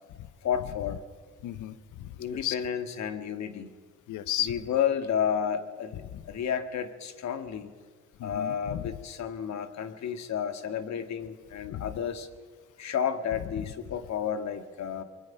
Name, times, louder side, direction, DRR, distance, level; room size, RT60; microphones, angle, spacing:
voice 1, 0.4-1.0 2.2-3.7 4.5-7.7 8.2-12.3 12.8-15.0, left 8 dB, 65° left, 9 dB, 1.9 m, -31 dB
voice 2, 1.4-2.6 4.1-4.5 6.1-6.2 8.2-8.9 11.7-12.0 13.6-13.7, left 12 dB, 85° left, 15 dB, 1.0 m, -34 dB
29.0 x 22.5 x 5.7 m, 1.5 s
cardioid pair, 90°, 30 cm